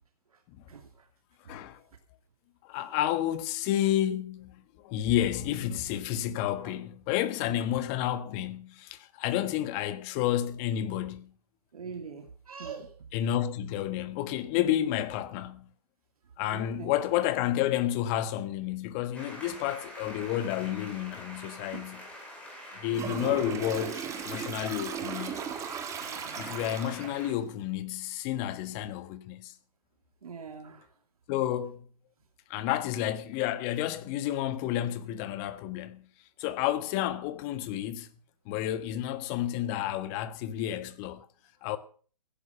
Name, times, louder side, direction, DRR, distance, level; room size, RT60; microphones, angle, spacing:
voice 1, 0.7-1.1 1.4-1.6 6.6-6.7 7.4-7.7 11.7-12.9 16.5-16.9 21.7-21.9 26.0-26.4 30.2-30.9, right 6 dB, 65° right, 2.6 m, -43 dB
voice 2, 1.5-1.8 2.6-11.3 13.1-15.7 16.4-22.0 22.8-25.4 26.3-29.5 31.3-31.9 32.5-36.1 36.4-38.1 38.4-41.3 41.6-41.8, left 12 dB, 25° left, 1.3 m, -30 dB
sound 1, 19.1-27.3, equal, 5° left, 4.9 m, -46 dB
Toilet flush, 22.9-27.3, right 8 dB, 15° right, 1.6 m, -37 dB
16.0 x 11.0 x 5.4 m
figure-of-eight pair, 140°, 21 cm